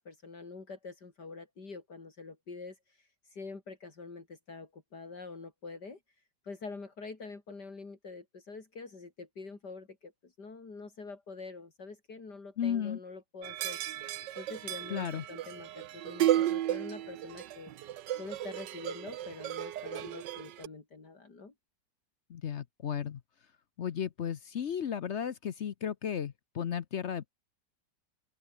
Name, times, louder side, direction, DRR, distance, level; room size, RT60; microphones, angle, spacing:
voice 1, 0.0-6.0 6.4-13.8 14.4-17.9 18.2-21.5, left 4 dB, 70° left, 4.3 m, -46 dB
voice 2, 12.6-13.0 14.9-15.2 22.3-23.2 23.8-27.3, left 8 dB, 55° left, 0.9 m, -34 dB
sound 1, 13.4-20.7, right 12 dB, 85° right, 1.5 m, -34 dB
omnidirectional pair, 1.8 m